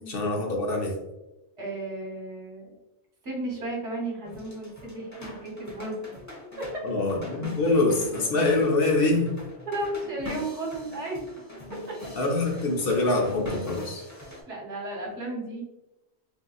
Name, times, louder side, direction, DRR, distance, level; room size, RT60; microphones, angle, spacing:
voice 1, 0.1-0.9 6.8-9.3 12.2-14.0, left 2 dB, 60° left, 0 dB, 0.9 m, -24 dB
voice 2, 1.6-2.8 3.2-6.2 9.6-11.3 14.5-15.6, right 1 dB, 75° right, -1 dB, 1.3 m, -34 dB
sound 1, 4.2-14.4, left 1 dB, 20° left, 0.6 m, -42 dB
3.7 x 2.8 x 2.3 m, 0.96 s
omnidirectional pair, 1.2 m